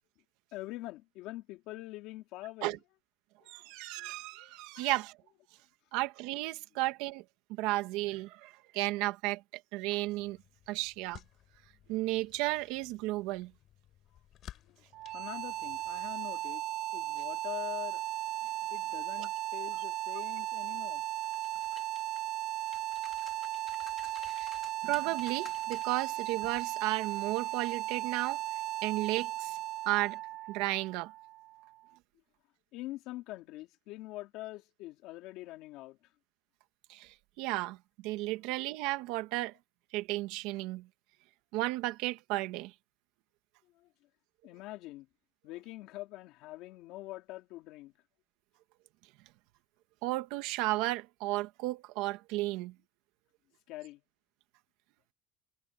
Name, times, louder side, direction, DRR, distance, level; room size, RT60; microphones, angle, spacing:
voice 1, 0.5-2.8 3.4-3.5 4.0-4.9 14.7-14.8 15.1-16.7 16.9-18.0 18.7-21.0 32.7-36.0 43.7-43.9 44.4-45.1 45.4-47.9 53.7-54.0, left 17 dB, 75° left, 3.0 m, -44 dB
voice 2, 3.5-5.2 5.9-7.2 7.5-9.4 9.7-10.4 10.7-11.2 11.9-13.5 19.2-19.3 24.2-24.5 24.8-28.4 28.8-29.6 29.8-30.2 30.5-31.1 36.9-37.8 38.0-39.5 39.9-40.9 41.5-42.7 50.0-52.7, right 19 dB, 85° right, 1.6 m, -33 dB
sound 1, 10.0-16.1, left 12 dB, 50° left, 7.2 m, -56 dB
sound 2, 14.9-31.9, right 16 dB, 55° right, 0.6 m, -36 dB
sound 3, 21.2-22.2 22.6-26.1 26.4-26.6, left 6 dB, 30° left, 4.4 m, -54 dB
cardioid pair, 140°, 0 cm